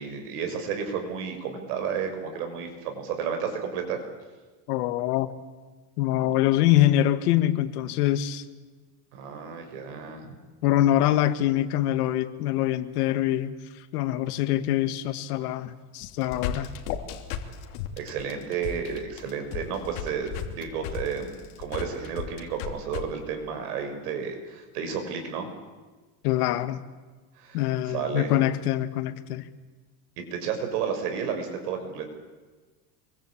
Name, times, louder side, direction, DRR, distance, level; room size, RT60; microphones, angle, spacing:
voice 1, 0.0-4.0 9.1-10.3 18.0-25.5 27.4-28.3 30.2-32.1, right 6 dB, 85° right, 5 dB, 6.6 m, -32 dB
voice 2, 4.7-5.3 6.0-8.4 10.6-13.5 13.9-16.7 26.2-26.8 27.5-29.4, left 13 dB, 90° left, 11 dB, 2.0 m, -24 dB
sound 1, 16.0-23.0, left 9 dB, 70° left, 3.1 m, -34 dB
26.0 x 23.5 x 8.7 m, 1.3 s
cardioid pair, 165°, 45 cm